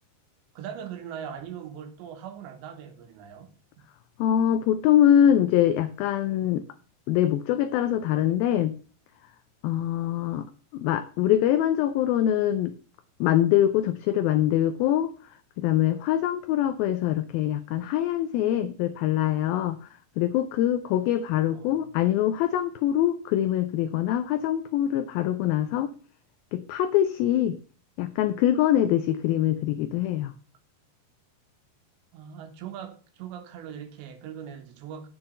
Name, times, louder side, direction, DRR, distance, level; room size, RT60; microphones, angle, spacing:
voice 1, 0.6-3.5 21.5-21.8 32.1-35.1, right 8 dB, 90° right, 3.6 m, -40 dB
voice 2, 4.2-6.6 7.1-8.7 9.6-10.5 10.7-12.7 13.2-15.1 15.6-19.8 20.2-25.9 26.5-27.6 28.0-30.3, left 11 dB, 85° left, 2.1 m, -23 dB
8.8 x 7.6 x 5.5 m
omnidirectional pair, 4.9 m